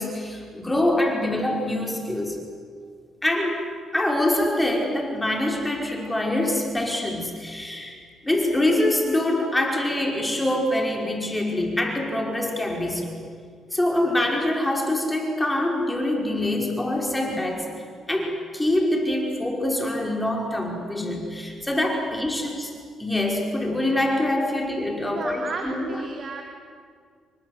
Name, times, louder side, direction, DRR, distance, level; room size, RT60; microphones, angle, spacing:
voice 1, 0.0-2.4 3.2-8.0 8.2-13.2 13.7-17.7 18.1-22.7 23.0-26.0, left 1 dB, 10° left, 1 dB, 5.4 m, -25 dB
voice 2, 25.1-26.4, right 4 dB, 50° right, 2 dB, 3.6 m, -33 dB
29.5 x 24.5 x 8.1 m, 2.1 s
cardioid pair, 90°, 0 cm